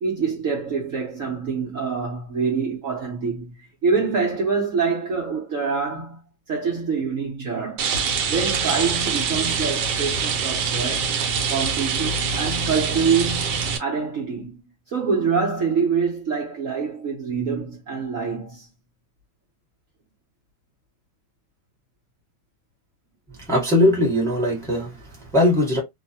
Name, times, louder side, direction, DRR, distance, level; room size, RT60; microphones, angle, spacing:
voice 1, 0.0-6.2 6.5-7.9 8.2-11.1 11.5-14.6 14.9-18.7, right 5 dB, 55° right, 1.0 m, -25 dB
Rain, 7.8-13.8, right 5 dB, 75° right, 1.3 m, -24 dB
voice 2, 23.5-25.8, left 1 dB, ahead, 1.0 m, -20 dB
3.1 x 2.1 x 2.7 m
omnidirectional pair, 1.9 m